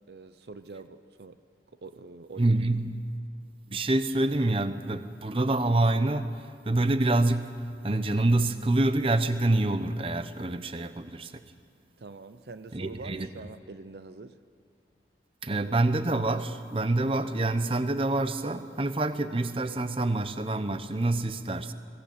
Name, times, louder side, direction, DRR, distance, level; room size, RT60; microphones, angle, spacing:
voice 1, 0.1-1.4 1.8-2.6 12.0-14.4, right 3 dB, 65° right, 11 dB, 0.7 m, -44 dB
voice 2, 2.4-3.0 3.7-11.4 12.7-13.3 15.4-21.7, right 2 dB, 30° right, 10 dB, 0.8 m, -27 dB
21.5 x 16.5 x 8.6 m, 2.4 s
head